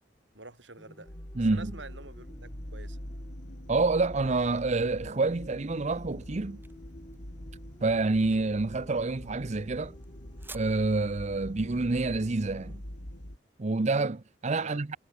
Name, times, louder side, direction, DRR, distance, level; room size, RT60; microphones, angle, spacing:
voice 1, 0.3-1.1 1.4-3.0 14.6-14.8, right 3 dB, 90° right, 6.3 m, -47 dB
sound 1, 0.8-12.8, equal, 20° left, 6.2 m, -55 dB
sound 2, 1.1-13.4, equal, 80° left, 5.2 m, -44 dB
voice 2, 1.4-1.7 3.7-6.6 7.8-9.9 10.5-12.8 13.6-15.0, right 3 dB, 40° right, 0.7 m, -28 dB
sound 3, 5.4-13.9, right 3 dB, 10° right, 6.2 m, -56 dB
head